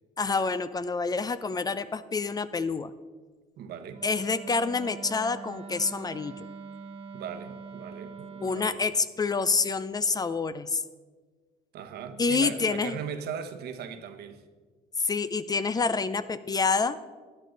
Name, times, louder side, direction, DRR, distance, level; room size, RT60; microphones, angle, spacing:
voice 1, 0.2-2.9 4.0-6.5 8.4-10.8 12.2-13.0 15.0-17.0, left 4 dB, 25° left, 0.4 m, -27 dB
voice 2, 3.6-4.0 7.1-8.8 11.7-14.4, right 7 dB, 70° right, 1.0 m, -38 dB
Wind instrument woodwind instrument, 3.9-8.8, right 5 dB, 35° right, 1.3 m, -43 dB
12.5 x 10.0 x 3.9 m
cardioid pair, 110°, 17 cm